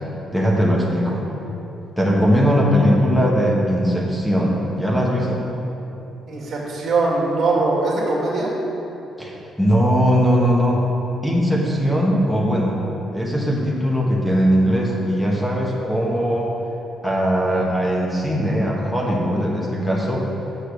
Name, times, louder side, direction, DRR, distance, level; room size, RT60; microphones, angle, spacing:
voice 1, 0.3-1.2 2.0-5.5 9.2-10.8 11.2-12.8 13.1-16.5 17.0-20.2, equal, 5° left, -3 dB, 1.3 m, -19 dB
voice 2, 6.3-8.5, right 3 dB, 60° right, -3 dB, 2.1 m, -21 dB
6.8 x 6.5 x 6.4 m, 3.0 s
cardioid pair, 90°, 0 cm